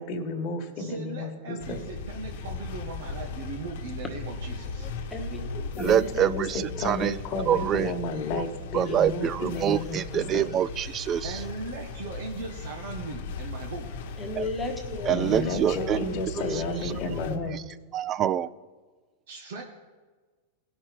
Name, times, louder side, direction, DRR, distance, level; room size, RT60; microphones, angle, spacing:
voice 1, 0.0-1.8 5.7-10.5 15.1-17.6, left 2 dB, 40° left, 1 dB, 1.5 m, -32 dB
voice 2, 0.8-4.9 11.2-13.9 19.3-19.6, right 4 dB, 75° right, 2 dB, 1.3 m, -38 dB
sound 1, 1.6-17.4, left 4 dB, 65° left, 1.1 m, -37 dB
voice 3, 4.8-6.2 6.7-6.9 8.3-8.4 8.9-9.1 9.7-9.8 14.2-17.5, left 2 dB, 5° left, 0 dB, 1.3 m, -37 dB
voice 4, 5.8-7.1 7.5-7.9 8.7-11.4 14.4-14.5 15.1-16.0 16.8-16.9 17.5-17.6 17.9-18.5, right 10 dB, 30° right, 18 dB, 0.4 m, -26 dB
17.5 x 5.9 x 4.5 m, 1.4 s
hypercardioid pair, 125°, 0 cm